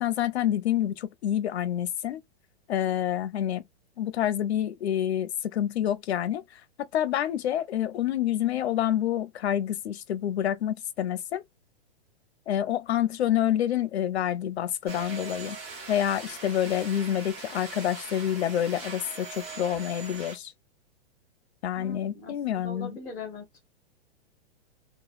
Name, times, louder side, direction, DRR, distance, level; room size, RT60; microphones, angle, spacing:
voice 1, 0.0-2.2 2.7-3.6 4.0-11.4 12.5-15.6 15.9-20.5 21.6-23.0, left 11 dB, 80° left, 0.6 m, -28 dB
sound 1, 14.9-20.4, right 4 dB, 25° right, 1.0 m, -41 dB
voice 2, 21.8-22.3 22.6-23.4, left 3 dB, ahead, 0.4 m, -40 dB
3.0 x 2.2 x 2.4 m
hypercardioid pair, 175°, 32 cm